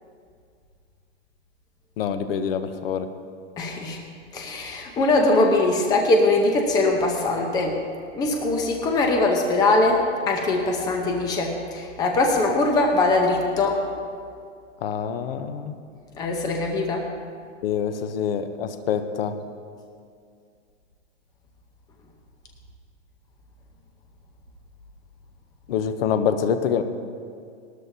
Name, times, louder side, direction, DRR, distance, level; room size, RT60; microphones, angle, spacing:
voice 1, 2.0-3.1 14.8-15.8 17.6-19.3 25.7-26.8, left 7 dB, 55° left, 9 dB, 0.8 m, -25 dB
voice 2, 3.6-4.0 4.3-7.8 8.1-13.8 16.2-17.1, left 2 dB, 10° left, 2 dB, 0.7 m, -21 dB
19.0 x 13.0 x 2.8 m, 2.2 s
hypercardioid pair, 160°, 36 cm